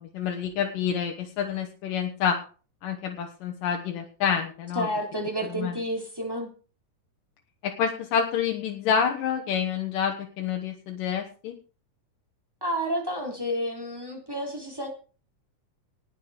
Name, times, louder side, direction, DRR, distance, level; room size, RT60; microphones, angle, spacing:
voice 1, 0.0-2.4 2.8-4.9 5.6-5.7 7.6-11.6, left 7 dB, 85° left, 2 dB, 3.0 m, -28 dB
voice 2, 4.7-6.5 12.6-14.9, equal, 5° right, 0 dB, 3.0 m, -30 dB
19.0 x 7.7 x 5.0 m, 0.38 s
omnidirectional pair, 3.8 m